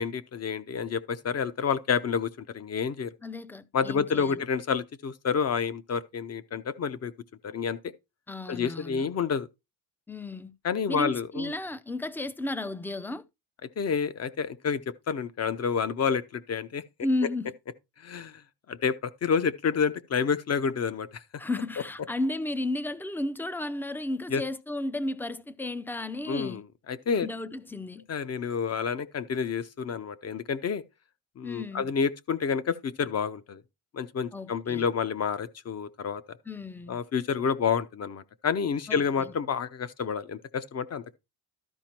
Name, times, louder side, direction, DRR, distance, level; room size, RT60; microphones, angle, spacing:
voice 1, 0.0-3.1 3.7-7.1 7.4-7.8 8.5-9.5 10.6-11.5 13.8-16.8 18.0-18.4 18.7-19.0 19.2-21.2 24.3-24.4 26.3-26.6 26.9-27.3 28.1-30.8 31.4-33.6 33.9-36.2 36.9-41.0, left 6 dB, 35° left, 0.8 m, -29 dB
voice 2, 3.2-4.4 8.3-9.1 10.1-10.5 10.9-13.2 17.0-17.5 21.4-26.6 27.2-28.0 31.4-31.9 34.3-34.8 36.5-37.0 38.9-39.3, left 2 dB, 5° left, 0.5 m, -33 dB
12.5 x 5.1 x 4.4 m
cardioid pair, 130°, 42 cm